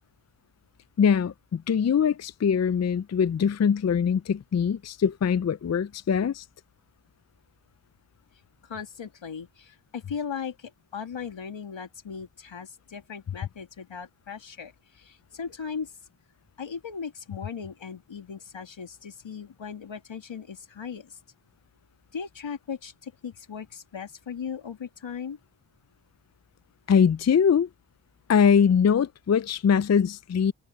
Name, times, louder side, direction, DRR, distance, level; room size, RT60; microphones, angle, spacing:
voice 1, 1.0-6.4 26.9-27.7 28.3-30.5, left 7 dB, 35° left, 0.5 m, -22 dB
voice 2, 8.6-16.0 16.6-21.2 22.1-25.4, left 6 dB, 75° left, 2.9 m, -38 dB
cardioid pair, 40°, 46 cm